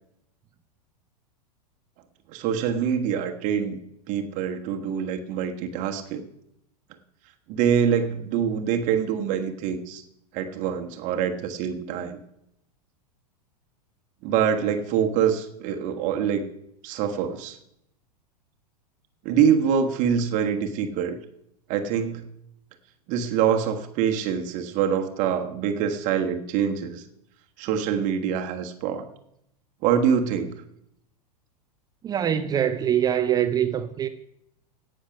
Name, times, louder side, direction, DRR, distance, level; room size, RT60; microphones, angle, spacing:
voice 1, 2.3-3.8 4.1-6.2 7.5-10.0 10.3-12.2 14.2-16.5 16.8-17.6 19.2-21.2 21.7-22.2 23.1-27.0 27.6-29.0 29.8-30.6, right 8 dB, 40° right, 1.3 m, -25 dB
voice 2, 32.0-34.1, right 9 dB, 20° right, 0.6 m, -23 dB
17.0 x 6.6 x 4.9 m
figure-of-eight pair, 95°, 21 cm